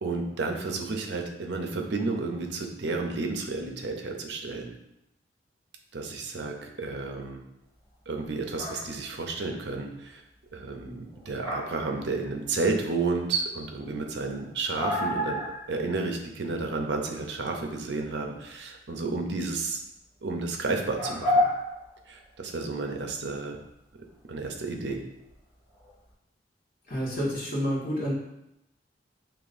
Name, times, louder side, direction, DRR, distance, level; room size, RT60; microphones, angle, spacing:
voice 1, 0.0-4.7 5.9-7.4 8.1-10.2 10.5-15.4 15.7-19.8 20.2-21.4 22.1-23.6 24.3-25.0, right 3 dB, 65° right, 3 dB, 0.6 m, -31 dB
sound 1, 8.3-8.9 11.1-12.0 12.2-12.7 13.2-13.3 13.6-13.7 13.9-14.0 14.2-16.0 16.6-16.9 19.3-19.4 20.9-22.4 23.1-23.5 25.3-25.4 25.7-25.9, left 1 dB, 20° left, 1.7 m, -30 dB
voice 2, 26.9-28.1, equal, 55° left, -6 dB, 1.5 m, -29 dB
6.7 x 3.0 x 2.6 m, 0.84 s
head